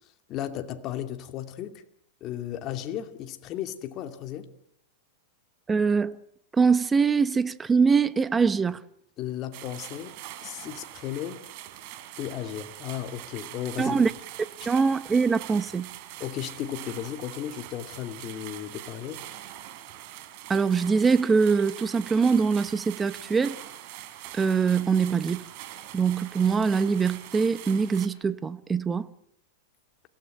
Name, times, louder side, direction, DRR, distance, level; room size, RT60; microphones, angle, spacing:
voice 1, 0.3-1.8 2.2-4.5 9.2-10.1 10.4-11.5 12.2-14.0 16.2-19.2, left 11 dB, 35° left, 2.5 m, -35 dB
voice 2, 5.7-6.2 6.5-8.8 13.8-14.1 14.7-15.9 20.5-23.6 24.3-25.4 25.9-29.1, right 5 dB, 15° right, 1.1 m, -23 dB
sound 1, 9.5-28.1, right 13 dB, 50° right, 3.7 m, -43 dB
30.0 x 17.5 x 9.1 m
supercardioid pair, 140°, 0 cm